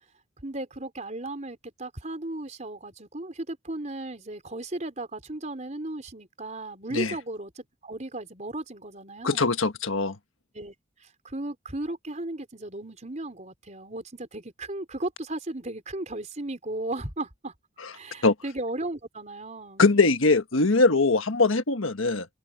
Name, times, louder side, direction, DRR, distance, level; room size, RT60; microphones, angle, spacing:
voice 1, 0.4-9.5 10.5-10.7 11.0-17.5 17.9-19.9, right 2 dB, 35° right, 4.4 m, -35 dB
voice 2, 9.2-10.1 18.2-18.3 19.8-22.3, left 3 dB, 80° left, 1.5 m, -21 dB
head